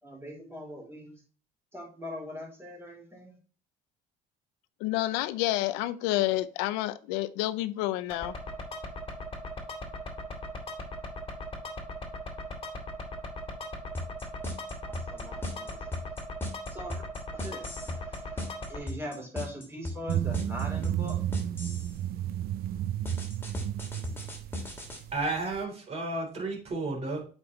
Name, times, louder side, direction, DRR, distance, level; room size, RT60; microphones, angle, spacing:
voice 1, 0.0-1.2 1.7-3.3 14.8-16.1 16.7-17.0 17.3-21.3, equal, 15° right, 3.8 m, -41 dB
voice 2, 4.8-8.3, left 16 dB, 85° left, 0.6 m, -29 dB
sound 1, 8.1-18.8, left 1 dB, 30° left, 2.2 m, -39 dB
sound 2, 14.0-22.0 23.1-25.0, left 1 dB, 10° left, 2.6 m, -37 dB
sound 3, 20.1-25.6, right 12 dB, 60° right, 0.6 m, -32 dB
voice 3, 25.1-27.3, right 2 dB, 35° right, 3.7 m, -32 dB
8.0 x 5.4 x 3.1 m
supercardioid pair, 100°, 18 cm